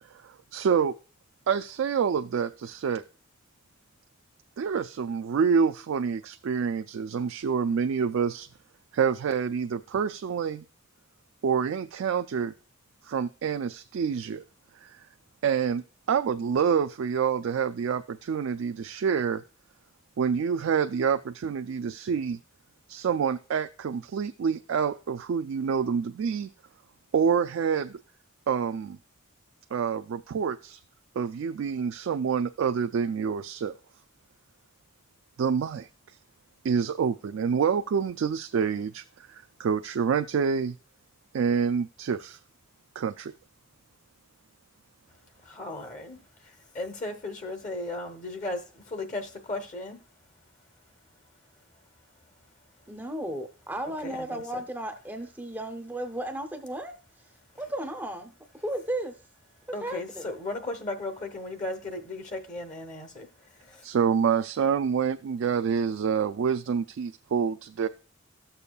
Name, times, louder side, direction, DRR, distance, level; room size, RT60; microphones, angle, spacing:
voice 1, 0.1-0.9 1.5-3.0 4.6-8.5 8.9-10.7 11.4-12.5 13.0-14.4 14.8-15.1 15.4-19.4 20.2-22.4 22.9-26.5 27.1-28.0 28.5-29.0 29.7-30.8 31.2-33.7 35.4-36.2 36.6-40.8 41.3-42.4 43.0-43.3 63.8-67.9, right 6 dB, 70° right, 7 dB, 0.3 m, -27 dB
voice 2, 45.1-52.9 53.8-54.6 57.4-57.7 59.6-63.9, left 2 dB, 35° left, 7 dB, 0.9 m, -38 dB
voice 3, 52.9-56.9 57.6-59.2 59.8-60.2, right 1 dB, 10° right, 6 dB, 0.6 m, -34 dB
13.5 x 6.8 x 2.3 m, 0.38 s
head